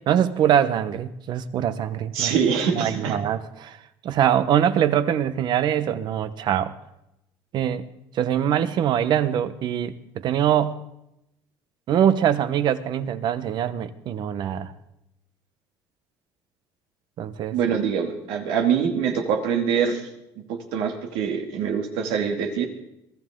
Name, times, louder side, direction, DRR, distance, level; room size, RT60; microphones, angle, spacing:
voice 1, 0.1-2.3 2.7-3.8 4.0-6.7 7.5-7.9 8.1-10.8 11.9-14.7 17.2-17.8, right 9 dB, 55° right, 13 dB, 1.1 m, -23 dB
voice 2, 2.1-3.1 17.5-20.1 20.5-22.7, right 7 dB, 80° right, 3 dB, 2.6 m, -24 dB
22.5 x 13.5 x 3.8 m, 0.83 s
cardioid pair, 110°, 9 cm